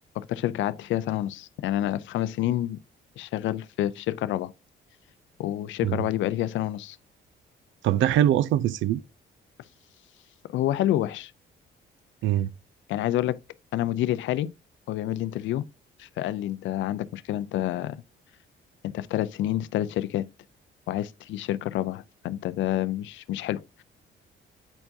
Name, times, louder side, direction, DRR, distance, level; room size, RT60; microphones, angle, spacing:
voice 1, 0.2-2.8 3.2-4.5 5.4-7.0 10.5-11.3 12.9-13.4 13.7-14.5 14.9-15.7 16.0-18.0 18.8-20.3 20.9-23.8, left 13 dB, 70° left, 0.4 m, -28 dB
voice 2, 7.8-9.0 12.2-12.5, right 11 dB, 75° right, 0.5 m, -22 dB
8.8 x 4.4 x 2.6 m
cardioid pair, 90°, 20 cm